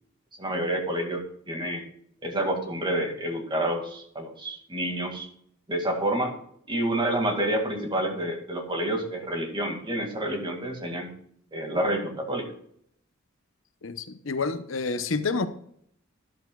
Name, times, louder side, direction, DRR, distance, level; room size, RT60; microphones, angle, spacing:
voice 1, 0.4-1.8 2.2-5.3 5.7-6.3 6.7-11.1 11.5-12.5, right 1 dB, 25° right, 2.3 m, -28 dB
voice 2, 13.8-15.5, left 4 dB, 70° left, 0.8 m, -28 dB
13.0 x 11.5 x 2.4 m
head